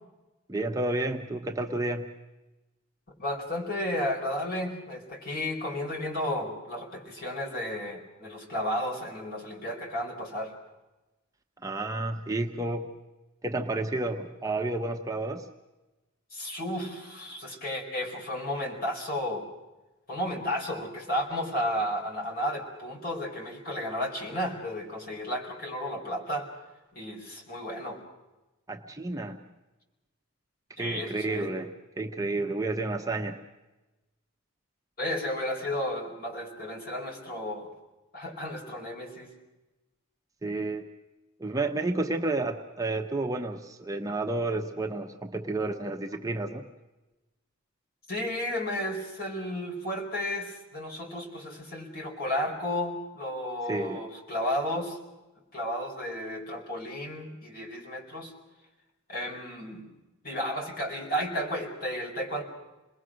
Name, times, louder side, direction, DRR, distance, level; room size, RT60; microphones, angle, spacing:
voice 1, 0.5-2.1 11.6-12.9 13.4-15.5 28.7-29.4 30.8-31.7 32.0-33.4 40.4-40.9 41.4-46.6 53.7-54.0, right 2 dB, 15° right, 4 dB, 0.9 m, -31 dB
voice 2, 3.2-10.6 16.3-19.5 20.1-26.5 26.9-28.0 30.8-31.5 35.0-37.7 38.1-39.3 48.1-55.0 55.5-58.3 59.1-59.9 60.2-62.4, left 1 dB, 45° left, 1 dB, 4.8 m, -33 dB
27.5 x 20.5 x 6.3 m, 1.1 s
head